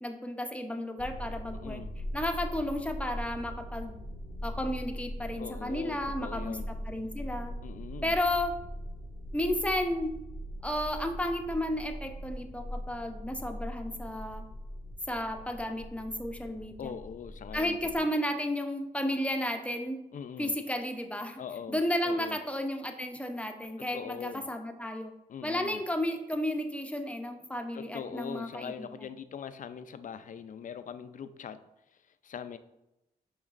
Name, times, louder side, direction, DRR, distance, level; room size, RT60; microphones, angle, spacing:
voice 1, 0.0-1.8 2.1-4.0 4.4-6.6 6.9-7.5 8.0-8.6 9.3-10.1 10.6-14.4 15.1-16.9 17.5-20.0 20.4-21.4 21.7-25.1 25.4-29.1, left 1 dB, 10° left, 5 dB, 0.6 m, -33 dB
sound 1, 1.0-18.0, equal, 80° left, 0.7 m, -41 dB
voice 2, 1.6-1.9 5.4-6.7 7.6-8.1 16.8-18.1 20.1-20.6 21.4-22.4 23.8-24.5 25.3-25.8 27.7-31.6 32.2-32.6, left 7 dB, 55° left, 12 dB, 0.4 m, -42 dB
7.1 x 3.0 x 2.4 m, 0.91 s
cardioid pair, 50°, 16 cm